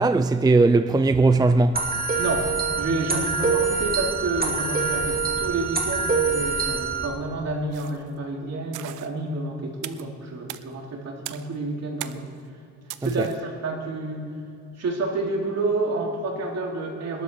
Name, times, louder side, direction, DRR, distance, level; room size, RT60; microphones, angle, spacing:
voice 1, 0.0-1.9 13.0-13.3, right 3 dB, 15° right, 0.5 m, -19 dB
sound 1, 1.7-7.1, right 4 dB, 30° right, 2.2 m, -25 dB
voice 2, 2.2-12.3 13.0-14.3 14.8-17.2, right 2 dB, 60° right, 3.2 m, -29 dB
sound 2, 7.7-8.1 8.7-9.1 9.8-10.1 10.5-10.6 11.2-11.5 12.0-12.3 12.9-13.4, right 14 dB, 90° right, 0.7 m, -38 dB
23.0 x 13.0 x 4.7 m
cardioid pair, 90°, 30 cm